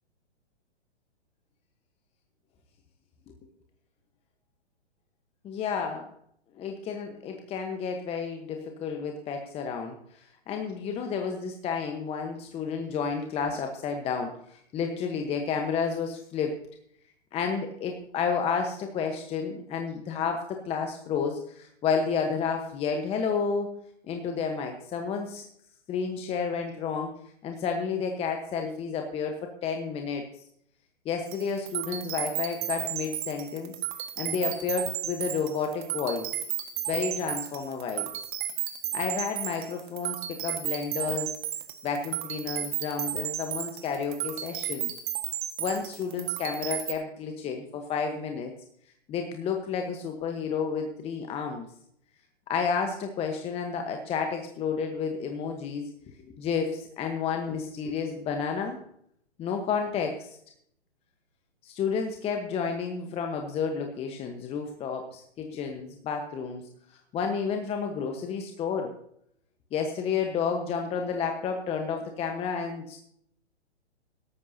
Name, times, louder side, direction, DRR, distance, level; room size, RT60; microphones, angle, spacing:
voice 1, 5.4-6.1 6.6-16.6 17.3-23.7 24.1-25.5 25.9-27.1 27.4-29.3 29.6-30.4 31.0-33.7 34.2-36.3 36.9-38.1 38.9-41.3 41.8-44.9 45.6-48.5 49.1-51.7 52.5-55.9 56.4-58.8 59.4-60.4 61.6-66.7 67.1-68.9 69.7-73.0, left 6 dB, 15° left, 4 dB, 1.1 m, -31 dB
sound 1, 31.3-46.9, right 12 dB, 45° right, 1.6 m, -34 dB
18.0 x 13.5 x 2.8 m, 0.68 s
hypercardioid pair, 130°, 34 cm